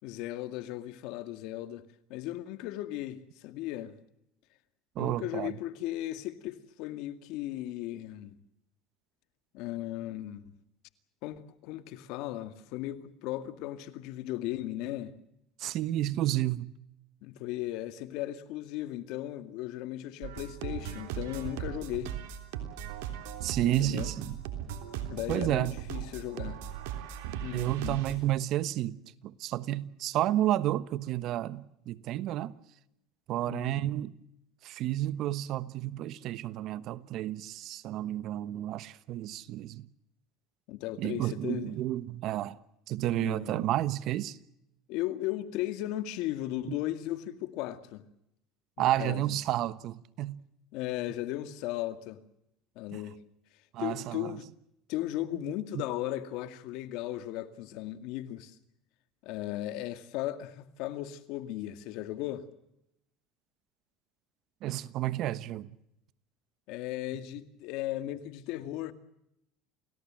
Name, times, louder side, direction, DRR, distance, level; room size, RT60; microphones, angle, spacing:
voice 1, 0.0-4.0 5.0-8.4 9.5-10.5 11.2-15.1 17.2-22.2 23.6-24.1 25.1-26.6 27.4-28.0 33.5-34.0 40.7-41.7 43.2-43.6 44.9-48.0 48.8-49.2 50.7-52.2 52.8-53.2 53.8-54.5 54.9-58.6 59.2-62.4 66.7-68.9, left 14 dB, 70° left, 2.1 m, -36 dB
voice 2, 4.9-5.5 15.6-16.7 23.4-24.4 25.3-25.8 27.5-32.5 33.3-34.1 34.6-39.9 41.0-42.6 42.9-44.4 46.7-46.8 48.8-50.4 52.9-53.0 53.7-54.3 55.7-55.8 64.6-65.7, right 14 dB, 60° right, 1.2 m, -31 dB
sound 1, 20.2-28.1, right 9 dB, 80° right, 3.3 m, -38 dB
29.5 x 17.5 x 7.6 m
supercardioid pair, 100°, 0 cm